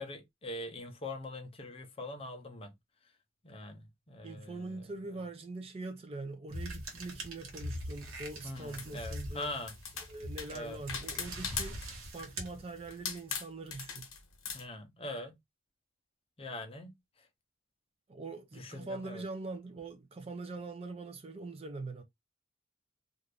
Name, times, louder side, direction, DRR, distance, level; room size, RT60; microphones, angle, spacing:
voice 1, 0.0-2.7 3.4-4.7 8.4-9.7 10.5-10.8 14.5-15.4 16.4-16.9 18.5-19.2, left 1 dB, 25° left, 0.6 m, -42 dB
voice 2, 4.2-9.5 10.1-14.1 18.1-22.0, right 3 dB, 30° right, 0.4 m, -43 dB
sound 1, 6.5-13.2, equal, 80° right, 1.0 m, -43 dB
sound 2, 8.6-9.1 9.6-11.9 12.2-12.5 12.9-14.6, left 6 dB, 75° left, 0.8 m, -39 dB
2.5 x 2.5 x 3.2 m
head